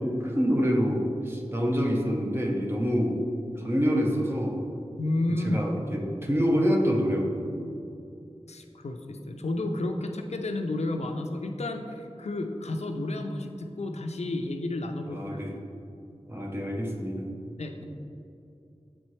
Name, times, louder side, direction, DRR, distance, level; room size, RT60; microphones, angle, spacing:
voice 1, 0.0-3.2 3.6-4.6 5.4-7.7 15.1-15.5 16.3-17.3, equal, 20° right, -1 dB, 0.8 m, -26 dB
voice 2, 5.0-5.6 8.5-15.4 17.6-17.8, left 2 dB, 75° left, 4 dB, 0.5 m, -31 dB
7.4 x 4.2 x 3.2 m, 2.6 s
wide cardioid pair, 70°, 11 cm